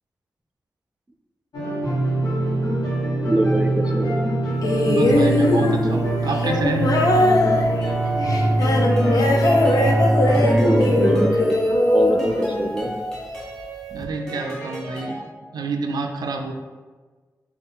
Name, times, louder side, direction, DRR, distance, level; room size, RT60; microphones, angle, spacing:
sound 1, 1.5-11.3, right 1 dB, 85° left, 1.0 m, -22 dB
voice 1, 3.2-4.2 10.3-11.6 11.9-12.9, right 1 dB, 15° right, 2 dB, 0.4 m, -23 dB
sound 2, 4.6-13.0 14.0-14.1, left 1 dB, 65° left, 0.5 m, -20 dB
voice 2, 4.9-6.9 13.9-15.2 15.5-16.5, right 3 dB, 85° right, 4 dB, 0.4 m, -27 dB
sound 3, 7.8-15.2, right 1 dB, 10° left, 1.1 m, -31 dB
3.7 x 2.3 x 4.0 m, 1.4 s
wide cardioid pair, 90°, 7 cm